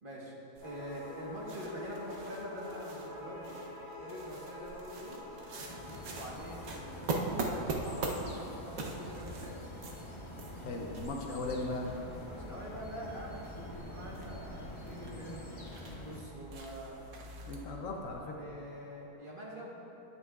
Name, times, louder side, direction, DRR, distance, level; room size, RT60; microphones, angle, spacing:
voice 1, 0.0-3.6 4.0-5.2 6.1-9.6 12.1-15.4 16.0-17.0 18.4-19.8, equal, 40° right, -5 dB, 1.4 m, -45 dB
sound 1, 0.5-18.2, right 3 dB, 75° right, 1.3 m, -43 dB
sound 2, 0.6-19.1, left 2 dB, 50° left, 1.5 m, -51 dB
sound 3, 5.7-16.2, left 1 dB, 35° left, 0.5 m, -46 dB
voice 2, 10.6-11.9 17.5-18.4, left 2 dB, 70° left, 1 dB, 1.1 m, -38 dB
10.0 x 9.5 x 2.4 m, 2.9 s
omnidirectional pair, 1.5 m